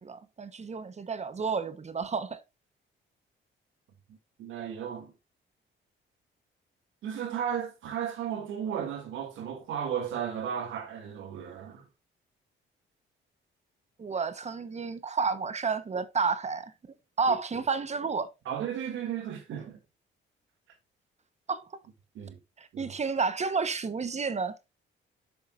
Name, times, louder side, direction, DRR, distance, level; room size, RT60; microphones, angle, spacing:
voice 1, 0.0-2.4 14.0-16.7 17.2-18.3 21.5-21.7 22.6-24.6, right 5 dB, 35° right, 1.0 m, -31 dB
voice 2, 4.1-5.1 7.0-11.9 17.3-17.4 18.5-19.8 22.1-22.4 22.7-22.9, right 8 dB, 80° right, 2.4 m, -35 dB
7.3 x 7.1 x 2.5 m
cardioid pair, 90°, 20 cm